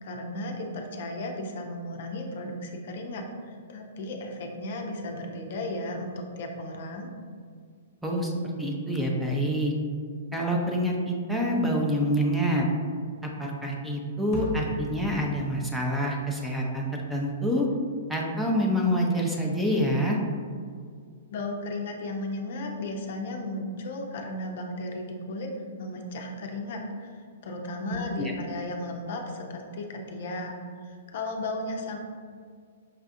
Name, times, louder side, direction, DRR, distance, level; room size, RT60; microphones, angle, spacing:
voice 1, 0.0-7.1 21.3-25.5 25.8-30.6 30.8-32.0, left 1 dB, 60° left, 2 dB, 0.5 m, -35 dB
voice 2, 8.0-8.3 8.6-9.7 10.3-12.6 13.4-17.7 18.1-20.2 28.2-28.3, equal, 5° right, -2 dB, 0.5 m, -26 dB
sound 1, 14.3-16.8, left 1 dB, 40° left, 0.8 m, -36 dB
5.6 x 2.4 x 2.5 m, 2.1 s
hypercardioid pair, 115°, 0 cm